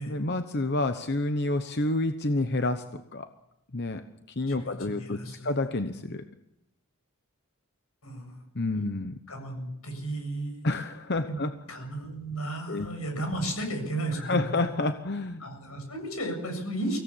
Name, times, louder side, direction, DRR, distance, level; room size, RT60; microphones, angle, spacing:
voice 1, 0.1-3.3 3.7-4.0 4.4-6.2 8.5-9.1 10.6-11.5 12.7-12.9 14.1-15.4, left 2 dB, 50° left, 8 dB, 1.0 m, -29 dB
voice 2, 4.5-5.6 8.0-8.4 9.3-10.6 11.3-11.4 11.7-14.6 15.4-17.0, right 1 dB, 90° left, 4 dB, 7.5 m, -34 dB
25.0 x 16.5 x 7.3 m, 0.88 s
head